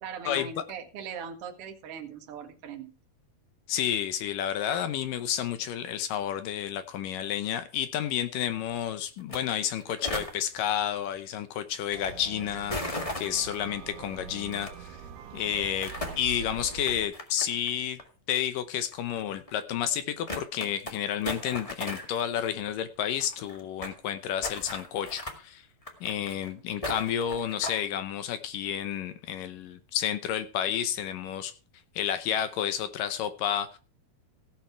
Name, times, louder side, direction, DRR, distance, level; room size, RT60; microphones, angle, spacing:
voice 1, 0.0-2.9, right 6 dB, 45° right, 3 dB, 2.1 m, -40 dB
voice 2, 3.7-15.0 15.3-18.0 18.3-25.6 26.0-31.5 32.0-33.8, left 10 dB, 70° left, 11 dB, 2.2 m, -31 dB
sound 1, 9.2-9.4 9.6-10.3 12.7-13.5 14.5-14.7 15.6-16.2 16.7-17.7 18.0-18.1 18.9-19.0 19.5-19.6 19.8-19.9 20.3-20.9 21.2-22.2 22.5-22.6 22.8-22.9 23.0-24.0 24.4-25.4 25.8-26.5 26.8-27.9, left 1 dB, 45° left, 0.4 m, -36 dB
sound 2, 11.9-17.1, right 7 dB, 85° right, 3.5 m, -43 dB
16.5 x 7.4 x 4.6 m, 0.34 s
omnidirectional pair, 4.5 m